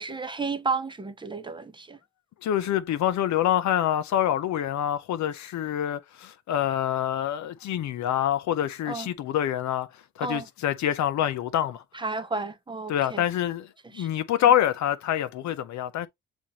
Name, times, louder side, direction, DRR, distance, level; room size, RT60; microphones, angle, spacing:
voice 1, 0.0-2.0 8.9-9.1 10.2-10.4 11.9-13.2 13.9-14.1, right 4 dB, 15° right, 0.7 m, -32 dB
voice 2, 2.4-11.8 12.9-16.1, left 11 dB, 70° left, 0.6 m, -26 dB
7.1 x 2.6 x 2.9 m
cardioid pair, 90°, 30 cm